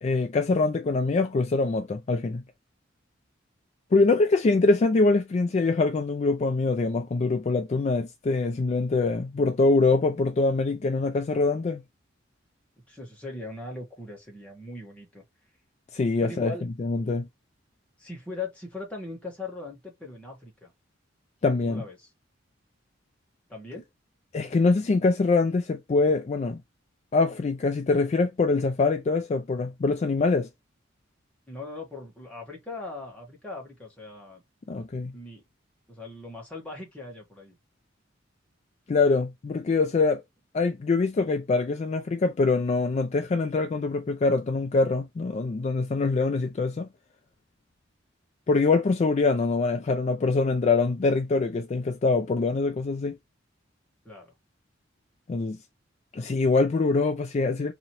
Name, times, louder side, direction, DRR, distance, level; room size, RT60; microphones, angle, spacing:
voice 1, 0.0-2.4 3.9-11.8 15.9-16.5 16.8-17.3 21.4-21.8 24.3-26.6 27.1-30.5 34.7-35.1 38.9-40.2 40.5-46.9 48.5-53.2 55.3-55.6 56.1-57.7, left 3 dB, 35° left, 0.3 m, -24 dB
voice 2, 12.9-15.2 16.2-16.6 18.0-20.7 21.6-22.1 23.5-23.9 31.5-34.4 35.1-35.4 35.9-37.6 54.0-54.3, left 3 dB, 5° left, 1.4 m, -39 dB
3.8 x 2.9 x 3.0 m
head